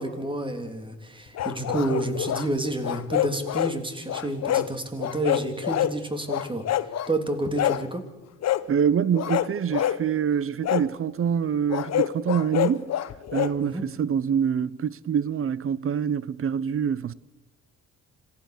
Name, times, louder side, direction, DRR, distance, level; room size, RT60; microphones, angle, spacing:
voice 1, 0.0-6.7 7.1-8.0 13.6-13.8, right 1 dB, 15° right, 3.5 m, -29 dB
sound 1, 1.4-2.5 2.8-3.7 4.1-4.7 5.0-6.0 6.3-7.1 7.6-7.9 8.4-8.6 9.1-10.0 10.6-10.9 11.7-13.5, left 12 dB, 60° left, 0.9 m, -26 dB
voice 2, 8.7-12.9 13.3-17.1, right 8 dB, 45° right, 0.8 m, -25 dB
26.5 x 16.0 x 6.8 m
cardioid pair, 90°, 30 cm